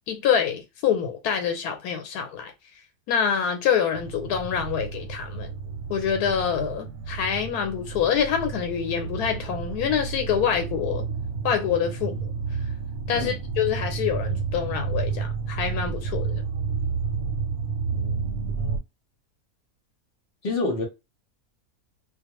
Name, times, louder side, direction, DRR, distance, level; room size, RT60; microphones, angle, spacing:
voice 1, 0.1-2.5 3.1-5.5 5.9-11.0 11.4-12.3 13.1-16.4, left 8 dB, 90° left, 1.1 m, -26 dB
sound 1, 3.9-18.8, right 5 dB, 70° right, 1.1 m, -31 dB
voice 2, 17.9-18.7 20.4-20.8, left 2 dB, 50° left, 0.8 m, -30 dB
2.4 x 2.3 x 2.9 m
omnidirectional pair, 1.6 m